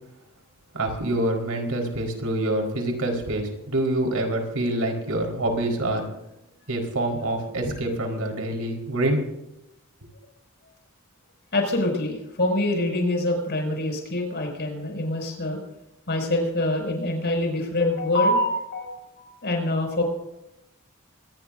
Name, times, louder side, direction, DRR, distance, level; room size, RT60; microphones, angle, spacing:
voice 1, 0.7-6.1 6.7-9.3, right 1 dB, 80° right, 2 dB, 4.6 m, -26 dB
voice 2, 11.5-15.6 16.1-20.0, left 1 dB, 50° left, 2 dB, 6.3 m, -25 dB
24.5 x 20.0 x 2.7 m, 0.89 s
head